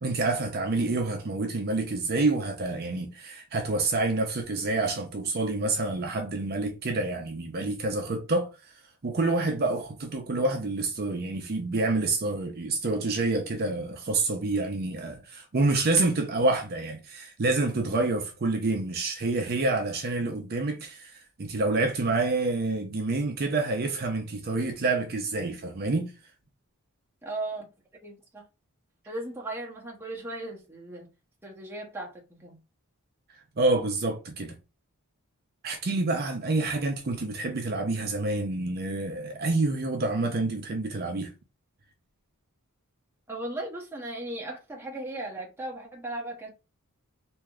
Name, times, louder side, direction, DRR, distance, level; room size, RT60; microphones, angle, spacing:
voice 1, 0.0-8.7 9.0-26.1 33.6-34.6 35.6-41.3, right 2 dB, 45° right, 0.6 m, -28 dB
voice 2, 27.2-27.7 28.0-28.4 29.1-31.1 31.4-32.6 43.3-46.5, right 2 dB, 10° right, 0.8 m, -37 dB
3.3 x 2.6 x 2.3 m
head